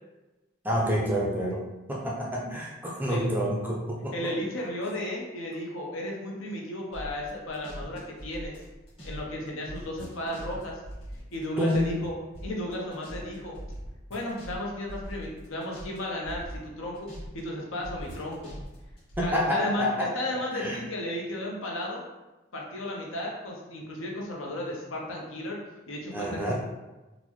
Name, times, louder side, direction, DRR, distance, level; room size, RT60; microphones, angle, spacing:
voice 1, 0.6-1.6 1.9-4.1 11.6-11.9 19.2-20.1 20.5-20.8 26.1-26.5, equal, 10° right, -3 dB, 0.4 m, -28 dB
voice 2, 4.1-8.5 9.0-10.8 11.3-12.1 12.4-13.6 14.1-18.5 19.2-22.0 22.5-26.5, left 1 dB, 75° left, -1 dB, 0.7 m, -34 dB
sound 1, 6.9-9.2 9.5-12.1 12.3-16.0 16.2-17.4 17.8-19.3, equal, 25° left, 1.1 m, -41 dB
3.9 x 2.1 x 3.0 m, 1.1 s
head